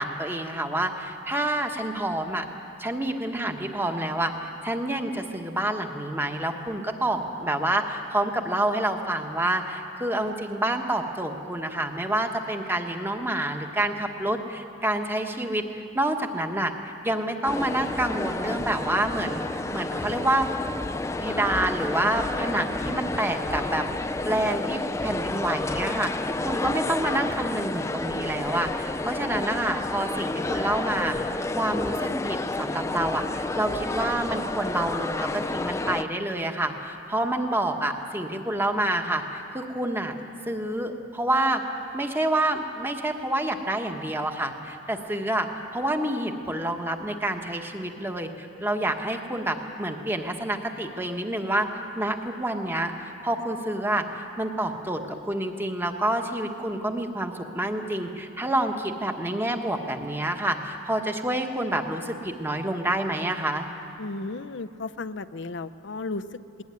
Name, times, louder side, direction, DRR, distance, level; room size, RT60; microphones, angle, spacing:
voice 1, 0.0-2.4 2.8-19.4 19.7-20.5 21.2-23.9 24.2-40.1 40.5-41.6 41.9-51.7 51.9-63.7, right 1 dB, 10° right, 5 dB, 1.3 m, -28 dB
sound 1, 17.4-36.0, left 2 dB, 15° left, 0.4 m, -30 dB
voice 2, 64.0-66.6, left 3 dB, 65° left, 14 dB, 0.7 m, -34 dB
20.0 x 19.0 x 9.5 m, 2.7 s
head